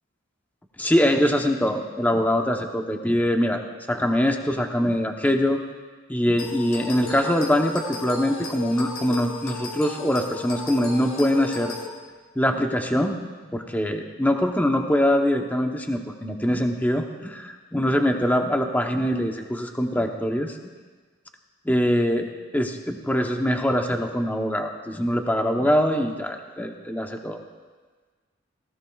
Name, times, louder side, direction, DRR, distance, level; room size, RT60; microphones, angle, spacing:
voice 1, 0.8-3.6 3.9-5.6 6.1-11.7 12.4-13.2 13.4-20.6 21.6-22.3 22.5-27.4, equal, 10° left, 4 dB, 0.8 m, -23 dB
sound 1, 6.4-11.9, left 4 dB, 90° left, 1.7 m, -35 dB
18.0 x 17.0 x 2.3 m, 1.4 s
head